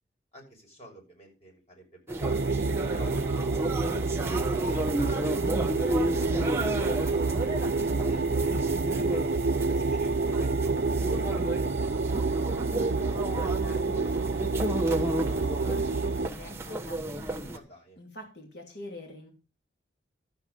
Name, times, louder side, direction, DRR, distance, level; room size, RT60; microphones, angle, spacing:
voice 1, 0.3-2.5 2.9-8.8 9.1-11.7 17.5-18.0, equal, 35° left, 1 dB, 5.9 m, -52 dB
sound 1, 2.1-17.6, right 1 dB, 15° right, 1.2 m, -33 dB
sound 2, 2.2-16.3, right 3 dB, 60° right, 0.6 m, -28 dB
sound 3, 3.9-11.3, left 1 dB, 15° left, 1.5 m, -51 dB
voice 2, 13.3-17.5 18.0-19.3, equal, 65° left, 2 dB, 2.8 m, -46 dB
12.5 x 8.2 x 5.3 m, 0.31 s
head